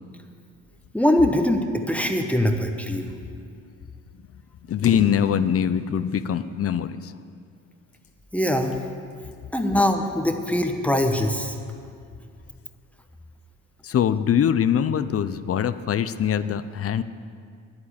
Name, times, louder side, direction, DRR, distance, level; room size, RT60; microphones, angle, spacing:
voice 1, 0.9-3.1 8.3-8.8 9.5-11.5, left 1 dB, 5° left, 5 dB, 1.1 m, -22 dB
sound 1, 4.7-5.8 6.0-6.8 7.7-8.5 9.1-9.4 9.9-10.1, left 4 dB, 70° left, 1.6 m, -35 dB
voice 2, 4.7-7.1 13.8-17.0, left 9 dB, 50° left, 13 dB, 0.6 m, -23 dB
10.5 x 9.6 x 8.8 m, 2.3 s
cardioid pair, 90°, 30 cm